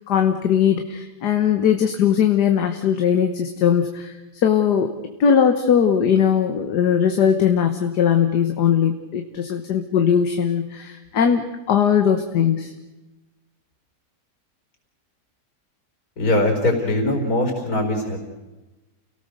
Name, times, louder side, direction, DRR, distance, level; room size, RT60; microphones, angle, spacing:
voice 1, 0.1-4.1 4.4-4.9 5.2-12.7, left 8 dB, 75° left, 6 dB, 1.8 m, -19 dB
voice 2, 16.2-18.2, left 1 dB, 60° left, 3 dB, 5.0 m, -21 dB
29.5 x 18.0 x 6.7 m, 1.1 s
omnidirectional pair, 1.8 m